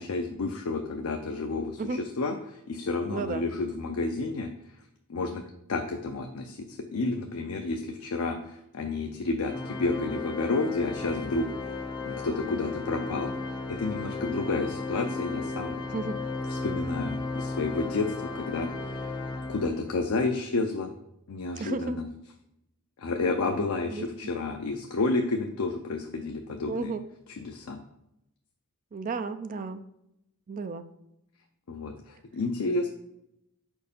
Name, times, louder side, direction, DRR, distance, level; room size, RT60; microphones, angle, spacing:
voice 1, 0.0-4.5 5.1-5.4 5.7-11.5 12.0-13.3 13.7-15.7 16.5-19.1 19.5-20.9 21.3-22.1 23.0-26.9 27.4-27.8 31.7-32.9, left 3 dB, 70° left, 4 dB, 0.5 m, -30 dB
voice 2, 3.1-3.4 15.9-16.2 21.6-22.0 23.6-24.0 26.7-27.0 28.9-29.8 30.5-30.9, right 3 dB, 35° right, 10 dB, 0.4 m, -33 dB
Organ, 9.5-20.1, left 3 dB, 20° left, 0.5 m, -35 dB
5.2 x 4.5 x 5.1 m, 0.83 s
head